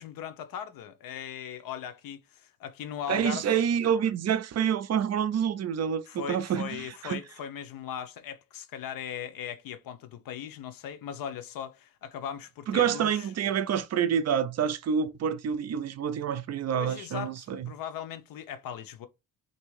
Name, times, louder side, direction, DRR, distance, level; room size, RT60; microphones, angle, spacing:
voice 1, 0.0-3.5 6.1-13.3 16.7-19.1, left 9 dB, 75° left, 0.7 m, -39 dB
voice 2, 3.1-7.2 12.7-17.7, right 8 dB, 50° right, 0.5 m, -27 dB
3.5 x 2.7 x 4.7 m
cardioid pair, 130°, 35 cm